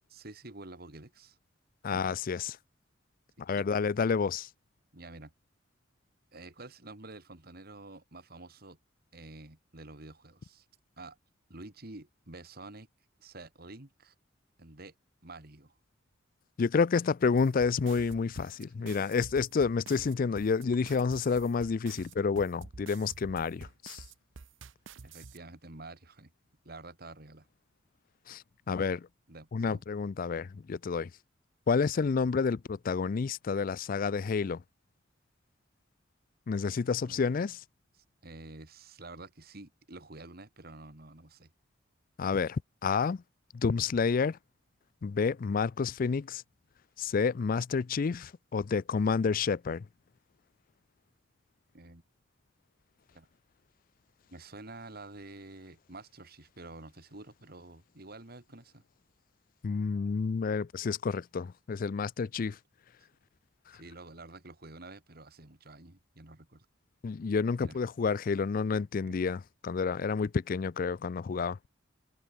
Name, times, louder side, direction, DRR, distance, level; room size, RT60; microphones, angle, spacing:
voice 1, 0.1-1.4 1.9-2.1 3.4-3.6 4.9-5.3 6.3-8.8 9.1-10.7 11.0-11.2 11.5-12.9 13.2-14.1 14.6-14.9 15.2-15.8 18.4-18.5 18.9-19.0 25.0-26.3 26.6-27.5 29.3-29.8 36.8-37.2 38.2-41.5 51.7-52.0 53.1-53.3 54.3-58.8 62.4-62.5 63.7-66.7 67.6-67.8 69.1-69.2, right 2 dB, 50° right, 2.6 m, -49 dB
voice 2, 1.8-2.6 3.4-4.5 16.6-24.0 28.3-29.1 29.5-31.1 31.7-34.6 36.5-37.6 42.2-43.2 43.5-44.4 45.0-46.4 47.0-49.9 59.6-62.6 67.0-71.6, left 5 dB, 45° left, 0.4 m, -29 dB
sound 1, 17.4-25.4, right 4 dB, 75° right, 0.8 m, -49 dB
head